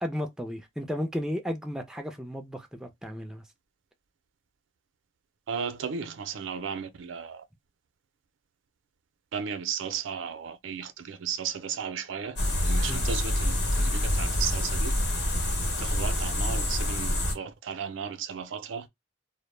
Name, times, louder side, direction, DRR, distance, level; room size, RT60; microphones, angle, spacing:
voice 1, 0.0-3.4 12.9-13.0, equal, 5° right, 0.3 m, -34 dB
voice 2, 5.5-7.4 9.3-12.4 12.6-14.9 15.8-18.9, right 7 dB, 85° right, 0.4 m, -35 dB
sound 1, 12.4-17.3, left 1 dB, 65° left, 0.9 m, -27 dB
2.1 x 2.0 x 3.1 m
head